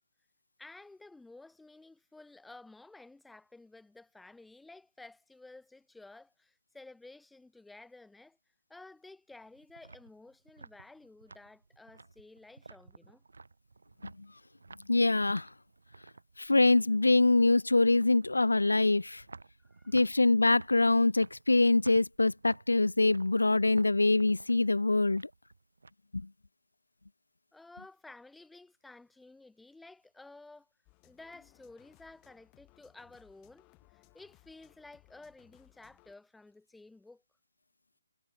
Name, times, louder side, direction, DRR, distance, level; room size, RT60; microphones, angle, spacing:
voice 1, 0.6-8.4 8.7-13.2 19.6-20.0 27.5-30.7 31.0-33.7 33.9-37.2, left 2 dB, 5° left, 2.6 m, -53 dB
sound 1, 9.3-25.9, right 3 dB, 65° right, 3.9 m, -54 dB
voice 2, 14.9-15.5 16.4-19.2 19.9-25.2 26.1-26.3, left 2 dB, 75° left, 0.4 m, -24 dB
sound 2, 30.9-36.2, left 26 dB, 20° left, 5.5 m, -64 dB
figure-of-eight pair, 145°, 0 cm